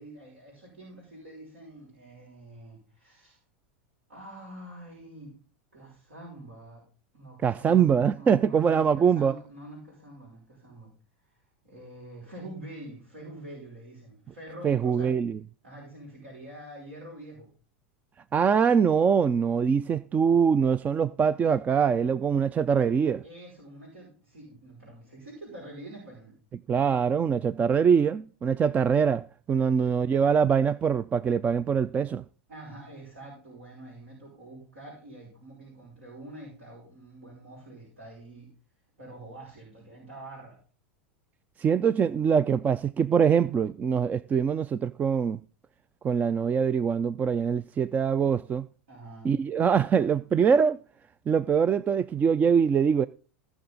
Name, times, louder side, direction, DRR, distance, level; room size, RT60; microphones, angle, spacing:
voice 1, 0.0-3.4 4.1-5.3 5.7-6.8 7.1-7.9 8.2-10.9 11.6-15.1 15.6-17.5 23.2-26.3 29.6-29.9 32.5-38.5 39.0-40.6 48.9-49.4, right 1 dB, 75° right, 6.1 m, -46 dB
voice 2, 7.4-9.3 14.6-15.4 18.3-23.2 26.7-32.2 41.6-45.4 46.0-48.7 49.2-50.8 51.3-53.1, right 7 dB, 25° right, 0.4 m, -23 dB
17.5 x 6.1 x 4.0 m
hypercardioid pair, 90°, 6 cm